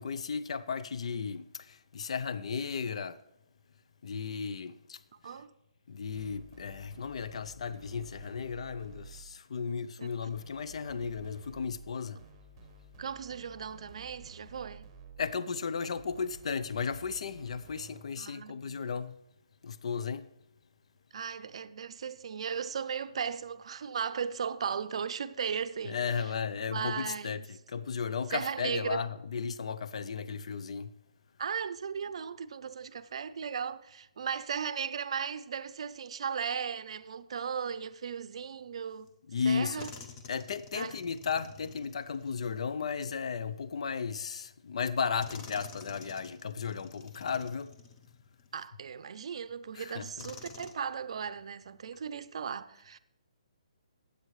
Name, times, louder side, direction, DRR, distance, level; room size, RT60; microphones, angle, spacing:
voice 1, 0.0-3.2 4.0-5.3 5.9-12.2 15.2-19.1 19.6-20.3 25.8-30.9 39.3-39.9 40.3-47.7 49.7-50.3, left 6 dB, 60° left, 0.5 m, -35 dB
sound 1, 6.2-9.4 10.3-15.4 16.0-18.2, right 4 dB, 15° right, 1.2 m, -53 dB
voice 2, 13.0-14.9 18.2-18.8 21.1-26.0 26.7-27.4 28.3-29.1 31.4-39.1 39.5-39.9 40.7-40.9 48.5-53.0, right 7 dB, 55° right, 0.5 m, -36 dB
sound 2, 39.1-39.2 39.8-43.4 44.4-44.5 45.2-48.5 49.1-49.2 50.2-50.7, left 5 dB, 20° left, 0.7 m, -50 dB
17.5 x 8.1 x 3.2 m
hypercardioid pair, 165°, 4 cm